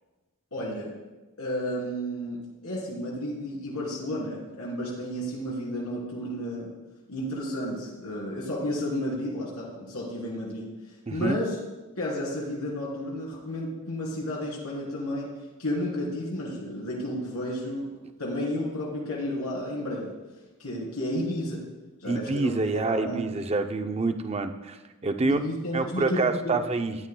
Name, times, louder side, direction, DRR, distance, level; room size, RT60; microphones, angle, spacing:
voice 1, 0.5-1.0 1.4-6.7 7.1-10.7 11.1-11.6 11.9-15.3 15.6-17.9 18.2-20.1 20.6-21.6 22.0-23.2 25.2-26.6, left 1 dB, 85° left, -5 dB, 3.1 m, -32 dB
voice 2, 11.1-11.4 22.1-24.8 25.0-25.4 25.7-27.0, right 3 dB, 30° right, 7 dB, 0.5 m, -27 dB
14.5 x 9.7 x 2.2 m, 1.1 s
head